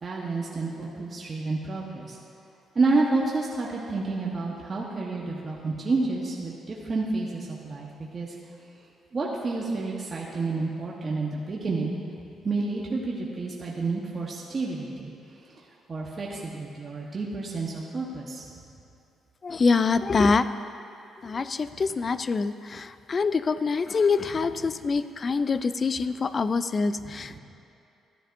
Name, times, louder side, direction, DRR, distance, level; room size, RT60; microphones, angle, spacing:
voice 1, 0.0-2.2 2.7-8.3 9.1-11.9 12.4-15.1 15.9-18.6 24.2-24.3 27.0-27.4, right 3 dB, 35° right, -4 dB, 1.2 m, -29 dB
voice 2, 19.4-20.4 21.2-27.4, left 4 dB, 40° left, 13 dB, 0.3 m, -25 dB
14.0 x 9.8 x 2.6 m, 2.6 s
cardioid pair, 90°, 0 cm